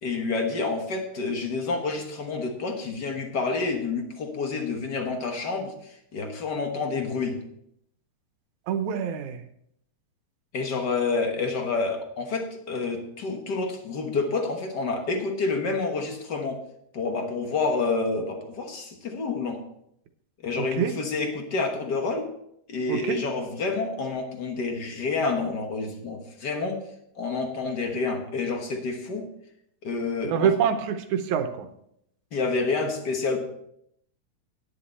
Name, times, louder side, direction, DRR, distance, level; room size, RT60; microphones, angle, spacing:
voice 1, 0.0-7.4 10.5-16.6 16.9-19.6 20.4-22.3 22.7-26.9 27.2-29.3 29.8-30.5 32.3-33.4, left 3 dB, 50° left, 4 dB, 1.4 m, -28 dB
voice 2, 8.7-9.4 20.6-20.9 22.9-23.2 30.2-31.7, right 8 dB, 80° right, 8 dB, 2.3 m, -26 dB
10.5 x 10.0 x 4.2 m, 0.73 s
omnidirectional pair, 3.4 m